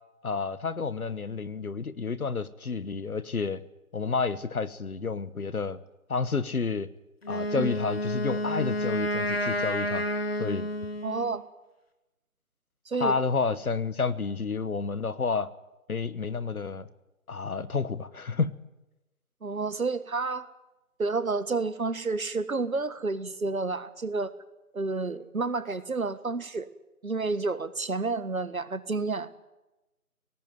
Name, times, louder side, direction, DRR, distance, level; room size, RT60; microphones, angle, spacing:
voice 1, 0.2-3.6 3.9-5.8 6.1-6.9 7.3-10.1 10.4-10.7 13.0-15.5 15.9-16.9 17.3-18.5, left 4 dB, 75° left, 16 dB, 1.3 m, -30 dB
Wind instrument woodwind instrument, 7.2-11.4, left 1 dB, 45° left, 2.2 m, -30 dB
voice 2, 11.0-11.4 12.9-13.2 19.4-20.4 21.0-24.3 24.7-26.7 27.0-29.4, right 3 dB, 70° right, 13 dB, 1.6 m, -30 dB
18.0 x 15.5 x 9.4 m, 1.0 s
figure-of-eight pair, 170°, 44 cm